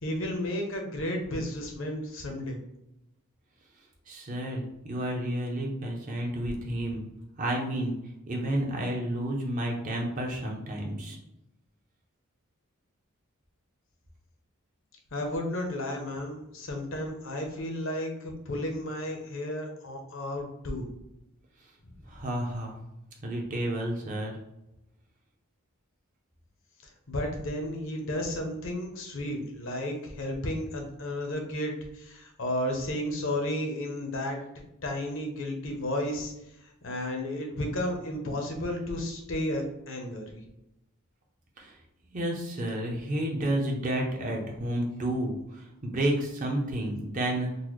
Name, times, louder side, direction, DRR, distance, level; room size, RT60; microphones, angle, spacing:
voice 1, 0.0-2.6 15.1-20.9 27.1-34.4 34.8-36.3 36.8-40.4, left 1 dB, 60° left, 3 dB, 0.7 m, -33 dB
voice 2, 4.1-7.1 7.4-8.0 8.3-11.2 22.1-22.7 23.2-24.4 41.6-41.7 42.1-47.5, right 1 dB, 35° right, 0 dB, 0.6 m, -31 dB
3.9 x 2.1 x 3.1 m, 0.88 s
head